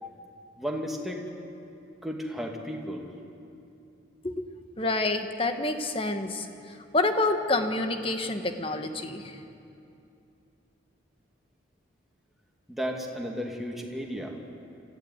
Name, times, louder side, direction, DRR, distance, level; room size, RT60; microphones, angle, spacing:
voice 1, 0.6-1.2 2.0-3.1 12.7-14.5, equal, ahead, 0 dB, 2.2 m, -34 dB
voice 2, 4.8-9.4, left 2 dB, 30° left, 6 dB, 1.4 m, -28 dB
25.5 x 15.0 x 9.7 m, 2.6 s
head